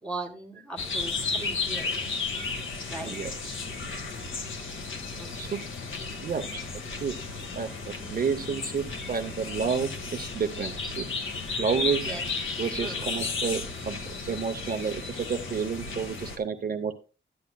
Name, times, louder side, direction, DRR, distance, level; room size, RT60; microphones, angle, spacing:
voice 1, 0.0-2.0 2.9-3.2 5.2-5.5 12.0-12.2 12.7-13.1, right 2 dB, 5° left, 2 dB, 1.8 m, -38 dB
sound 1, 0.8-16.4, left 4 dB, 85° left, 1.6 m, -34 dB
voice 2, 3.0-3.5 5.3-5.6 6.2-6.6 7.0-7.2 7.5-11.0 11.6-12.2 12.5-16.9, right 6 dB, 50° right, 6 dB, 0.7 m, -30 dB
12.0 x 9.5 x 2.2 m, 0.35 s
wide cardioid pair, 160°, 20 cm